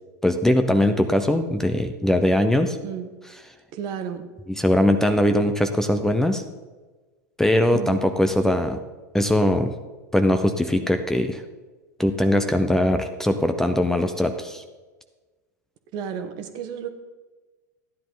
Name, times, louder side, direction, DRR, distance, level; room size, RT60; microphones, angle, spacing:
voice 1, 0.2-2.8 4.6-6.4 7.4-8.8 9.1-9.7 10.1-11.4 12.0-14.6, left 1 dB, 5° left, 8 dB, 0.7 m, -21 dB
voice 2, 2.8-3.1 3.7-4.3 7.7-8.0 15.9-16.9, right 8 dB, 50° right, 7 dB, 1.3 m, -32 dB
13.5 x 10.0 x 3.9 m, 1.3 s
hypercardioid pair, 95°, 10 cm